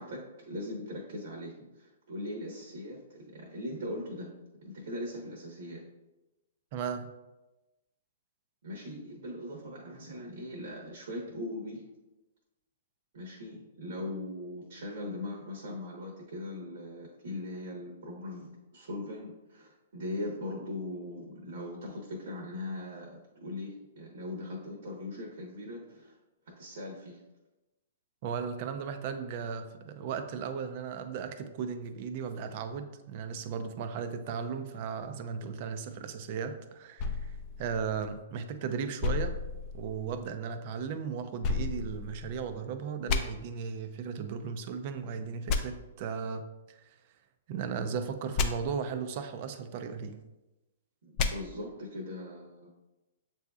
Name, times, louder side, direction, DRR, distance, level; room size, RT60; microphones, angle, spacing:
voice 1, 0.0-4.3 4.6-5.9 8.6-11.8 13.1-26.1 26.5-27.2 51.0-52.7, left 1 dB, 70° right, -2 dB, 1.0 m, -40 dB
voice 2, 6.7-7.1 28.2-39.4 39.7-47.0 47.5-50.2, right 6 dB, 45° right, 9 dB, 0.4 m, -36 dB
sound 1, 37.0-38.4 39.0-40.2 41.4-42.6 43.1-43.2 45.5-45.6 48.4-48.5 51.2-51.3, left 4 dB, 35° left, 0.4 m, -32 dB
7.0 x 2.7 x 2.3 m, 1.0 s
hypercardioid pair, 140°, 0 cm